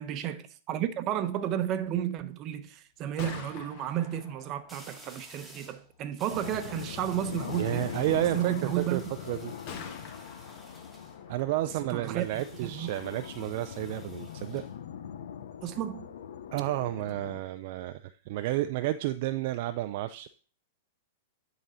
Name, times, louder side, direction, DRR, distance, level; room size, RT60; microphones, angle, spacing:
voice 1, 0.0-7.9 8.3-9.0 11.9-12.3 12.6-12.9 15.6-16.1, right 11 dB, 35° right, 0.8 m, -32 dB
sound 1, 1.8-1.9 4.7-5.8 6.2-11.2 12.2-14.7, right 1 dB, ahead, 1.7 m, -53 dB
Gunshot gunfire, 2.9-16.8, left 6 dB, 45° left, 1.5 m, -51 dB
sound 2, 6.3-17.4, left 8 dB, 75° left, 0.7 m, -42 dB
voice 2, 7.5-9.0 9.3-9.5 11.3-14.6 16.5-20.3, right 14 dB, 55° right, 0.4 m, -31 dB
10.5 x 4.0 x 4.2 m
hypercardioid pair, 125°, 0 cm